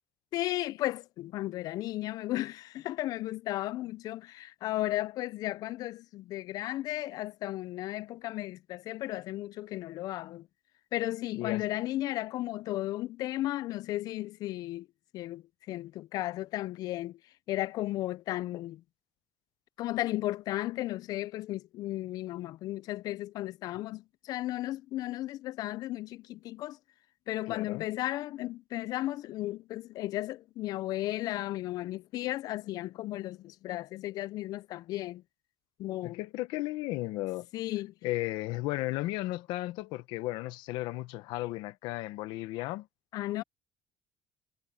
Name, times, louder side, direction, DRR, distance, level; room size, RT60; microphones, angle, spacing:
voice 1, 0.3-10.5 10.9-14.9 15.1-17.2 17.5-18.8 19.8-26.8 27.3-35.2 35.8-36.2 37.5-37.9 43.1-43.4, left 16 dB, 55° left, 0.4 m, -34 dB
voice 2, 27.5-27.8 36.0-37.5 38.0-42.9, left 18 dB, 90° left, 1.1 m, -34 dB
cardioid pair, 150°, 8 cm